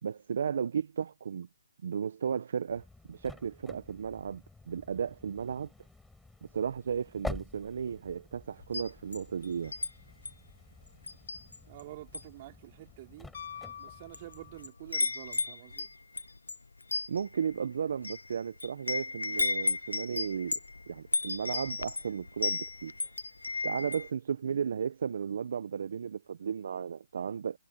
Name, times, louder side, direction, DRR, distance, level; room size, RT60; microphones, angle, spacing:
voice 1, 0.0-1.5 1.8-5.7 6.5-9.7 17.1-20.6 20.9-22.9 23.6-27.6, right 7 dB, 55° right, 1.3 m, -34 dB
sound 1, 2.7-14.7, left 2 dB, 5° left, 6.9 m, -48 dB
Wind chime, 8.6-9.9 10.3-10.5 11.1-11.8 12.1-12.4 13.1-13.2 13.9-14.3 14.6-24.1, left 3 dB, 85° left, 0.8 m, -34 dB
voice 2, 11.7-13.3 13.7-15.9, right 16 dB, 35° right, 4.2 m, -48 dB
Piano, 13.3-14.9 17.3-17.4, left 8 dB, 50° left, 2.5 m, -46 dB
hypercardioid pair, 150°, 0 cm